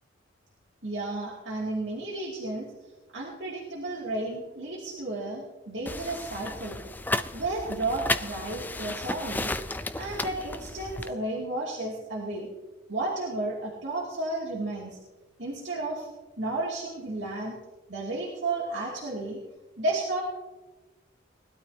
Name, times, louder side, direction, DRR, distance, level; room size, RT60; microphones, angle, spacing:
voice 1, 0.8-2.7 3.1-6.8 7.3-9.5 10.0-12.5 12.9-15.0 15.4-16.1 16.4-17.6 17.9-19.4 19.8-20.2, right 2 dB, 65° right, -5 dB, 2.5 m, -32 dB
sound 1, 5.9-11.1, left 2 dB, 10° left, 0.3 m, -33 dB
20.0 x 12.5 x 2.8 m, 1.2 s
head